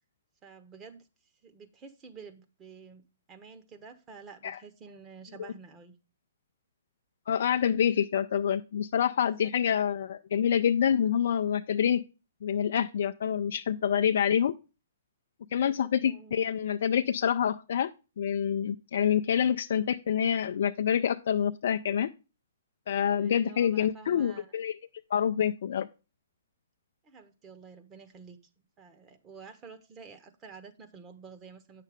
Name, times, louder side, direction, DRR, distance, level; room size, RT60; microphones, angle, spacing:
voice 1, 0.4-1.1 1.4-5.9 9.3-9.5 15.6-16.3 23.1-24.5 27.0-31.8, right 5 dB, 20° right, 6 dB, 1.1 m, -50 dB
voice 2, 7.3-12.0 12.4-14.5 15.5-17.9 18.2-22.1 22.9-24.7 25.1-25.9, left 8 dB, 60° left, 7 dB, 0.4 m, -27 dB
8.9 x 6.6 x 3.5 m, 0.31 s
figure-of-eight pair, 125°, 0 cm